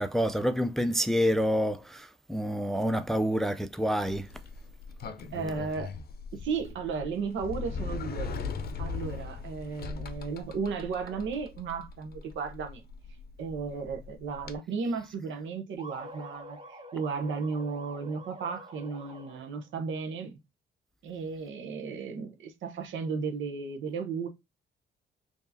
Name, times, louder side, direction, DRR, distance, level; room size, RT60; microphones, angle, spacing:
voice 1, 0.0-4.3, equal, ahead, 0.4 m, -28 dB
Sliding door, 4.0-14.6, left 5 dB, 50° left, 0.6 m, -39 dB
voice 2, 5.3-5.9 6.3-8.3 8.8-12.8 13.4-20.3 21.0-24.3, right 5 dB, 75° right, 1.0 m, -34 dB
sound 1, 15.8-19.7, equal, 35° right, 2.1 m, -47 dB
4.6 x 2.9 x 2.6 m
cardioid pair, 90°, 20 cm